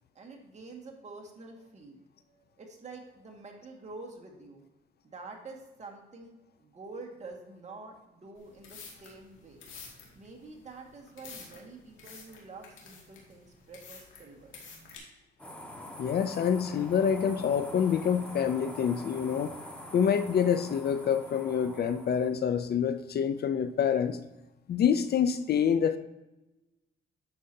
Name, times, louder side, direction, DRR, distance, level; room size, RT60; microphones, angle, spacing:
voice 1, 0.2-2.0 2.3-4.6 5.0-9.6 10.1-14.5, right 3 dB, 35° right, 1 dB, 1.9 m, -47 dB
sound 1, 8.3-15.0, left 5 dB, 75° left, 2.2 m, -50 dB
sound 2, 15.4-22.3, left 1 dB, 5° left, 1.6 m, -45 dB
voice 2, 16.0-19.5 19.9-24.2 24.7-26.0, left 7 dB, 55° left, 11 dB, 0.6 m, -27 dB
10.0 x 6.6 x 2.8 m, 1.0 s
cardioid pair, 90°, 20 cm